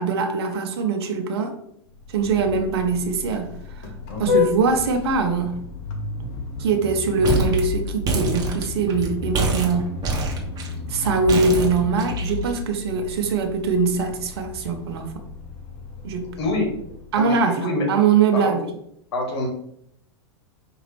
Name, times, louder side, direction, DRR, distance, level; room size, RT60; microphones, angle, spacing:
voice 1, 0.0-1.6 2.1-3.9 4.2-5.6 6.6-9.9 10.9-15.2 16.0-16.3 17.1-18.7, right 4 dB, 70° right, 4 dB, 0.8 m, -22 dB
Vehicle horn car horn honking, 1.9-17.3, left 5 dB, 50° left, 0.9 m, -32 dB
sound 1, 7.2-7.6 7.9-9.1 9.3-10.7 11.3-12.6, right 4 dB, 30° right, 1.1 m, -24 dB
voice 2, 17.2-17.9 18.3-18.5 19.1-19.5, left 2 dB, 70° left, 2 dB, 1.5 m, -26 dB
5.1 x 2.8 x 3.3 m, 0.72 s
hypercardioid pair, 110°, 14 cm